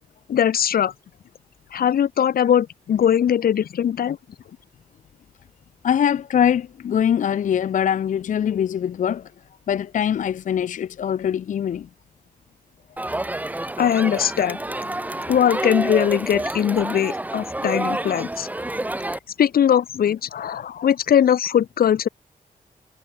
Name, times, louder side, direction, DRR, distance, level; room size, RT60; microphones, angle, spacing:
voice 1, 0.3-0.9 1.7-4.2 13.8-14.6 15.3-18.5 19.4-22.1, left 9 dB, 80° left, 1.1 m, -20 dB
voice 2, 5.8-9.3 9.7-11.9, left 9 dB, 60° left, 0.5 m, -22 dB
Crowd, 13.0-19.2, right 1 dB, 10° right, 2.1 m, -28 dB
wide cardioid pair, 160°, 15 cm